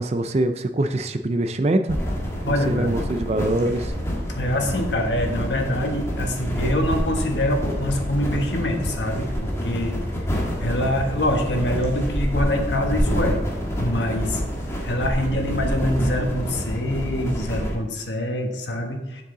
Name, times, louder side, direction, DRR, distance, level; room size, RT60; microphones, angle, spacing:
voice 1, 0.0-2.0 2.4-3.9, right 1 dB, 35° right, 8 dB, 0.4 m, -23 dB
sound 1, 1.9-17.8, equal, 15° left, 1.6 m, -27 dB
voice 2, 2.4-2.9 4.3-13.4 13.8-14.4 14.8-19.2, left 1 dB, 80° left, 3 dB, 1.4 m, -25 dB
7.5 x 7.3 x 3.9 m, 1.1 s
head